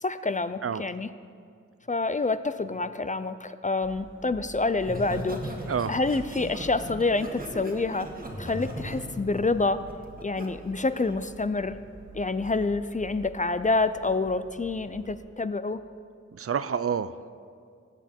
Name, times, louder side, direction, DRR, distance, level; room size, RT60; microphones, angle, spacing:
voice 1, 0.0-1.1 1.9-5.5 5.9-8.1 8.4-9.8 10.2-11.8 12.1-15.8, left 3 dB, 25° left, 12 dB, 0.4 m, -27 dB
sound 1, 3.8-15.2, right 3 dB, 80° right, 2.4 m, -48 dB
Laughter, 4.8-10.5 10.9-11.2, equal, 30° right, 1.7 m, -38 dB
voice 2, 16.3-17.3, right 7 dB, 50° right, 14 dB, 0.4 m, -28 dB
19.0 x 8.1 x 4.4 m, 2.3 s
wide cardioid pair, 90°, 29 cm